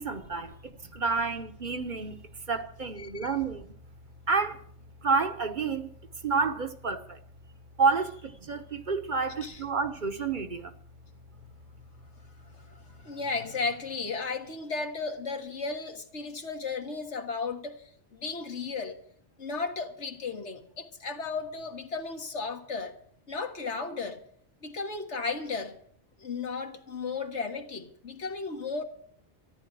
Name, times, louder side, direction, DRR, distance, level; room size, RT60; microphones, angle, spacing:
voice 1, 0.0-2.2 2.5-3.7 4.3-4.6 5.0-5.9 6.2-7.2 7.8-10.7, right 4 dB, 45° right, 1.2 m, -29 dB
voice 2, 12.4-17.8 18.2-19.0 19.4-23.0 23.3-24.2 24.6-25.8 26.2-28.8, left 4 dB, 80° left, 2.0 m, -34 dB
14.0 x 10.5 x 7.6 m
omnidirectional pair, 1.2 m